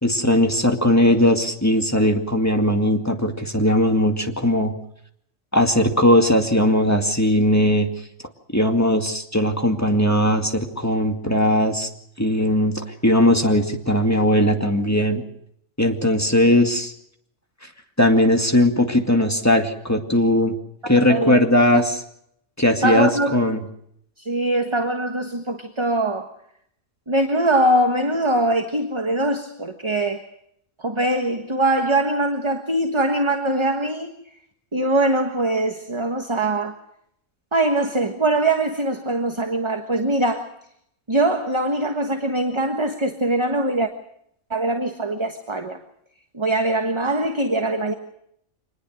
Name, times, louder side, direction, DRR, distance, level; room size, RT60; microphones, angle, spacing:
voice 1, 0.0-4.7 5.5-7.9 8.5-11.9 12.2-15.2 15.8-16.9 18.0-20.5 20.9-22.0 22.6-23.6, left 1 dB, 10° left, 4 dB, 2.2 m, -19 dB
voice 2, 20.8-21.4 21.7-21.8 22.8-23.4 24.2-26.3 27.1-30.3 30.8-34.1 34.7-36.8 37.5-40.5 41.1-43.9 44.5-45.8 46.3-47.9, right 1 dB, 20° right, 5 dB, 1.5 m, -22 dB
25.5 x 20.5 x 6.4 m, 0.70 s
omnidirectional pair, 1.4 m